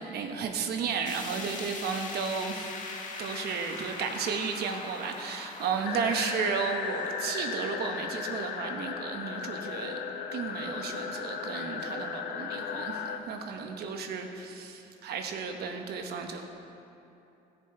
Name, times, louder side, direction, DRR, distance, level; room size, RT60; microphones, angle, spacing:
voice 1, 0.0-2.7 3.2-10.0 10.3-16.5, right 6 dB, 70° right, 4 dB, 1.1 m, -33 dB
sound 1, 1.1-11.2 11.6-11.7 12.1-12.2 13.0-13.1, left 3 dB, 50° left, 1.4 m, -43 dB
sound 2, 5.8-13.2, left 6 dB, 70° left, 0.8 m, -36 dB
15.5 x 6.9 x 4.5 m, 2.8 s
cardioid pair, 110°, 17 cm